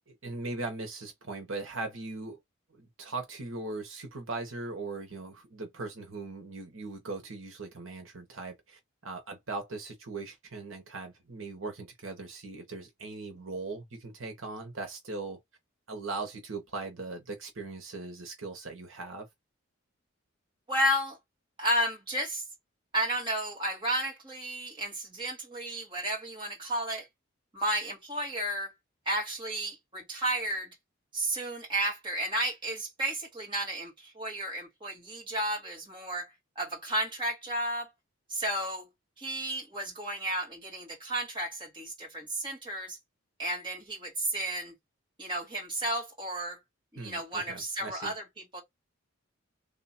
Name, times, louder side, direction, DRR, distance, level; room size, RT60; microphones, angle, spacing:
voice 1, 0.0-2.4 2.7-15.4 15.9-19.3 47.0-48.2, right 3 dB, 75° right, 1.4 m, -39 dB
voice 2, 20.7-21.2 21.6-22.4 22.9-27.1 27.5-28.7 29.1-30.7 31.1-36.3 36.6-37.9 38.3-38.9 39.2-43.0 43.4-44.7 45.2-46.6 46.9-48.2 48.5-48.6, right 1 dB, 25° right, 1.9 m, -32 dB
3.5 x 2.9 x 4.3 m
head